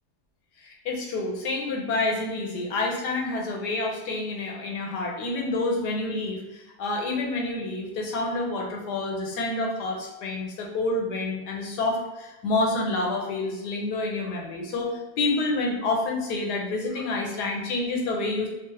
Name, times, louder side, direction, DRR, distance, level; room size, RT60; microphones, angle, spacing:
voice 1, 0.6-18.5, left 2 dB, 75° left, -1 dB, 1.2 m, -28 dB
3.7 x 2.1 x 2.7 m, 1.1 s
omnidirectional pair, 1.8 m